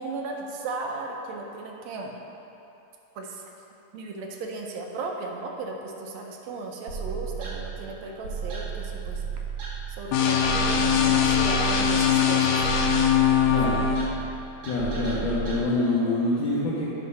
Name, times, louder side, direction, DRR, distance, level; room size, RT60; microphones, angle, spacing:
voice 1, 0.0-2.2 3.2-3.4 3.9-9.2 9.9-12.7, right 3 dB, 75° right, 1 dB, 1.8 m, -35 dB
sound 1, 6.9-15.6, right 6 dB, 50° right, 1.6 m, -34 dB
sound 2, 10.1-14.1, left 7 dB, 80° left, 1.9 m, -21 dB
voice 2, 13.5-13.8 14.6-16.9, left 2 dB, 65° left, -9 dB, 1.3 m, -25 dB
9.7 x 3.7 x 5.5 m, 3.0 s
omnidirectional pair, 3.4 m